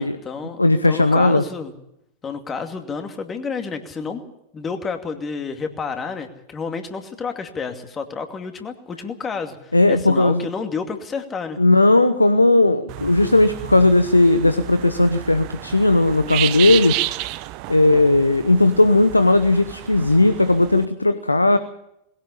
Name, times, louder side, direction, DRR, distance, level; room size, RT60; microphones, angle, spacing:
voice 1, 0.0-0.6 0.9-1.7 2.2-4.2 4.5-11.6, left 5 dB, 20° left, 6 dB, 2.5 m, -30 dB
voice 2, 0.6-1.4 9.7-10.5 11.6-17.0 17.7-21.6, left 2 dB, 85° left, 12 dB, 1.0 m, -16 dB
sound 1, 12.9-20.8, right 16 dB, 45° right, 0.9 m, -31 dB
21.0 x 17.0 x 8.5 m, 0.80 s
figure-of-eight pair, 90°, 0 cm